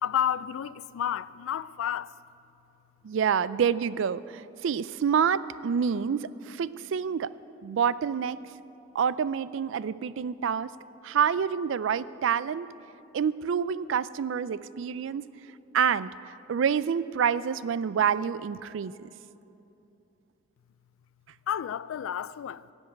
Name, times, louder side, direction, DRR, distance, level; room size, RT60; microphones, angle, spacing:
voice 1, 0.0-2.1 21.5-22.7, left 9 dB, 85° left, 0.3 m, -31 dB
voice 2, 3.0-7.3 7.6-8.4 8.9-10.7 11.0-12.7 13.1-15.2 15.7-19.1, right 7 dB, 65° right, 0.3 m, -27 dB
16.0 x 5.4 x 9.3 m
head